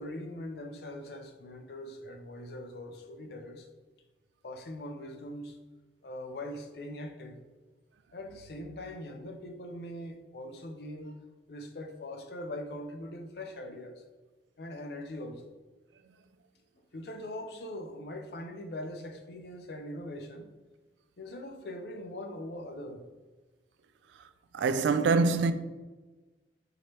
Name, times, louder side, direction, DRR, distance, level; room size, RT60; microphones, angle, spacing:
voice 1, 0.0-3.7 4.4-5.6 6.0-7.4 8.1-11.2 11.5-14.0 14.6-15.5 16.9-20.5 21.2-23.0, left 1 dB, 65° left, 0.5 m, -41 dB
voice 2, 24.5-25.5, right 4 dB, 90° right, 0.3 m, -24 dB
4.8 x 3.0 x 2.9 m
head